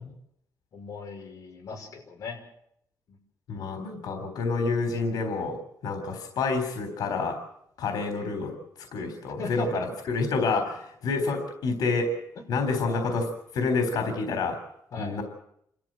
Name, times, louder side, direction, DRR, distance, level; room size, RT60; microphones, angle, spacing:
voice 1, 0.7-2.4 3.1-3.2 9.4-9.9 12.8-13.0 14.9-15.2, left 3 dB, 55° left, 0 dB, 5.7 m, -37 dB
voice 2, 3.5-5.6 5.8-7.4 7.8-8.5 8.9-12.1 12.5-13.3 13.5-14.6 15.0-15.2, left 4 dB, 90° left, 6 dB, 3.7 m, -28 dB
28.5 x 13.5 x 7.6 m, 0.73 s
wide cardioid pair, 170°, 7 cm